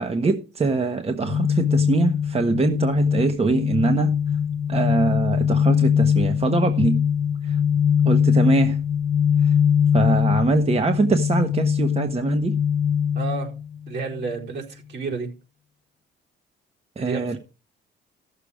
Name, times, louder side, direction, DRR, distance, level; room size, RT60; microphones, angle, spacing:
voice 1, 0.0-4.1 4.7-7.0 7.4-7.6 8.0-8.8 9.4-9.5 9.9-12.5 17.0-17.4, right 3 dB, 30° right, 1.1 m, -23 dB
sound 1, 1.2-14.3, left 8 dB, 80° left, 1.0 m, -22 dB
voice 2, 13.1-13.5 13.9-15.3 17.0-17.4, right 4 dB, 60° right, 4.2 m, -30 dB
15.0 x 6.8 x 4.8 m
cardioid pair, 90°, 20 cm